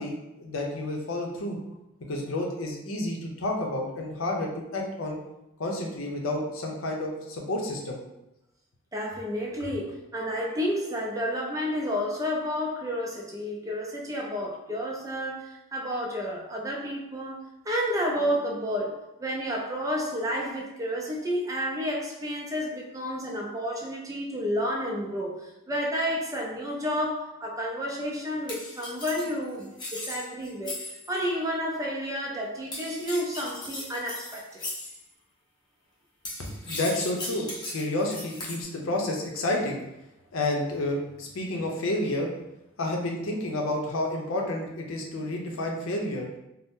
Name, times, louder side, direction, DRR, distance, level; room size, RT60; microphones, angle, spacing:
voice 1, 0.0-1.6 2.1-5.2 5.6-8.0 36.4-39.8 40.3-42.3 42.8-46.3, left 1 dB, 75° left, 0 dB, 0.6 m, -30 dB
voice 2, 8.9-17.4 17.6-30.8 31.1-34.6, equal, 15° right, -1 dB, 0.4 m, -31 dB
sound 1, 28.5-31.1 32.7-35.0 36.2-38.6, left 1 dB, 20° left, 0.7 m, -38 dB
2.6 x 2.0 x 3.5 m, 0.89 s
head